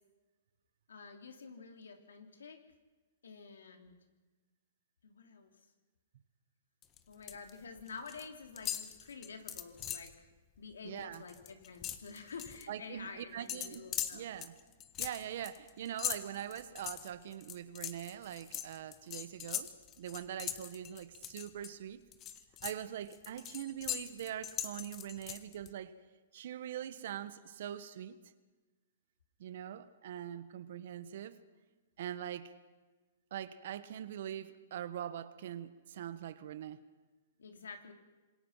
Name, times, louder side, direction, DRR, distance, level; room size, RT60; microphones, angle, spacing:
voice 1, 0.9-2.6 3.2-3.9 5.0-5.6 7.1-10.3 10.6-14.3 37.4-37.9, left 5 dB, 85° left, 5 dB, 3.2 m, -49 dB
sound 1, 6.8-7.5 7.8-8.3 8.6-10.1 10.6-10.7 11.0-12.6 13.5-21.7 22.1-25.7, left 11 dB, 30° left, 1.5 m, -41 dB
voice 2, 10.8-11.2 12.7-14.5 15.0-19.7 20.0-22.0 22.6-25.9 26.3-28.2 29.4-31.4 32.0-32.5 33.3-36.8, right 10 dB, 65° right, 13 dB, 1.4 m, -43 dB
26.5 x 21.5 x 5.8 m, 1.3 s
hypercardioid pair, 130°, 0 cm